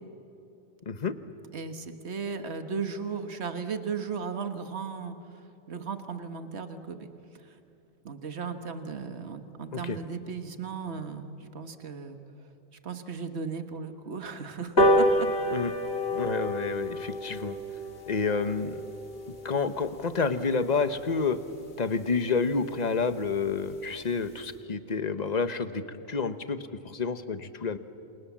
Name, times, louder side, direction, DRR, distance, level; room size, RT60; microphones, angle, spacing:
voice 1, 1.5-7.1 7.3-7.6 8.0-12.5 12.8-15.3, right 5 dB, 75° right, 8 dB, 1.7 m, -36 dB
sound 1, 14.8-21.5 21.9-22.0 22.3-22.5 22.7-22.8 23.1-23.2 23.5-23.8 24.2-24.3, equal, 60° left, 2.1 m, -29 dB
voice 2, 16.1-17.6 18.1-18.8 19.4-21.4 21.8-26.6 26.8-27.8, left 4 dB, 40° left, 11 dB, 1.2 m, -29 dB
28.5 x 28.0 x 7.4 m, 2.9 s
omnidirectional pair, 1.1 m